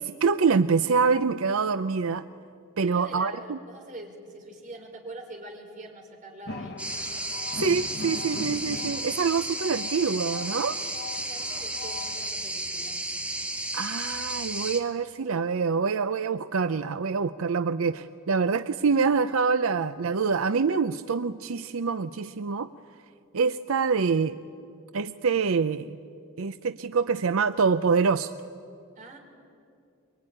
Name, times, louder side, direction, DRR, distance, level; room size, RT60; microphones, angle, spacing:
voice 1, 0.0-2.2 2.8-3.6 7.6-10.8 13.7-22.7 23.3-24.4 24.9-26.0 26.4-28.3, right 5 dB, 80° right, 12 dB, 0.6 m, -25 dB
voice 2, 2.8-6.8 11.0-13.0 29.0-29.2, right 2 dB, 40° right, 1 dB, 4.3 m, -44 dB
sound 1, 6.5-12.3, left 3 dB, 55° left, 1.1 m, -40 dB
sound 2, 6.8-14.8, right 1 dB, 5° right, 1.5 m, -33 dB
23.5 x 23.0 x 10.0 m, 2.4 s
head